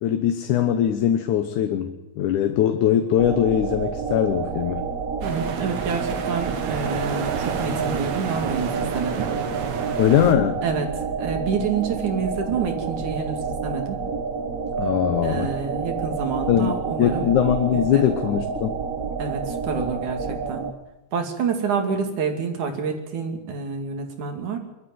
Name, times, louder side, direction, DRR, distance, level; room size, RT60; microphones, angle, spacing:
voice 1, 0.0-4.9 10.0-10.6 14.8-15.5 16.5-16.7 17.0-18.8, left 10 dB, 85° left, 7 dB, 2.6 m, -21 dB
sound 1, 3.2-20.7, right 5 dB, 35° right, 1.5 m, -29 dB
sound 2, 5.2-10.3, right 7 dB, 65° right, 2.7 m, -30 dB
voice 2, 5.2-9.3 10.6-10.9 11.2-14.0 15.2-17.3 17.7-18.1 19.2-20.7 21.1-24.6, right 5 dB, 85° right, 5 dB, 4.1 m, -28 dB
23.0 x 14.0 x 9.5 m, 0.99 s
omnidirectional pair, 3.4 m